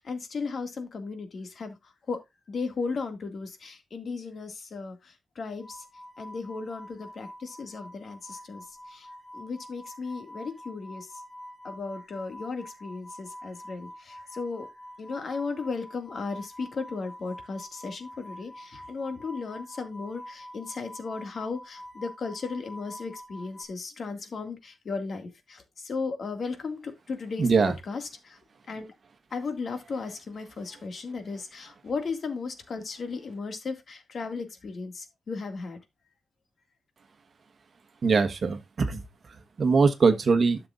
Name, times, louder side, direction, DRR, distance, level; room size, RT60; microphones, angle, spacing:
voice 1, 0.0-2.2 2.5-5.8 6.2-11.2 11.6-14.7 15.0-28.4 28.7-28.9 29.3-35.8, left 4 dB, 45° left, 2.1 m, -36 dB
sound 1, 5.6-23.7, equal, 10° left, 1.8 m, -46 dB
voice 2, 27.4-27.7 38.0-39.0 39.6-40.6, right 4 dB, 40° right, 1.2 m, -22 dB
12.0 x 6.9 x 2.5 m
wide cardioid pair, 150°, 0 cm